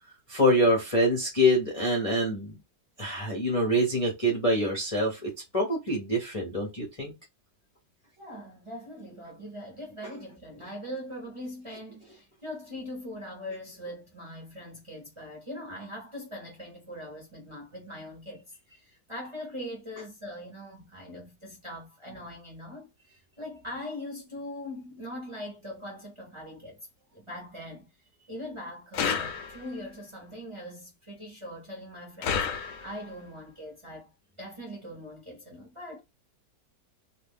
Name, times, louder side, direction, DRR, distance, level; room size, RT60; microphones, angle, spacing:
voice 1, 0.3-2.6 3.0-7.1, equal, 35° left, 0.6 m, -25 dB
voice 2, 8.2-18.4 18.7-27.9 28.3-34.1 34.4-36.0, left 1 dB, 25° right, 0.8 m, -41 dB
sound 1, 28.9-29.9 32.2-33.2, left 7 dB, 70° left, 0.8 m, -31 dB
2.6 x 2.5 x 3.5 m
omnidirectional pair, 1.8 m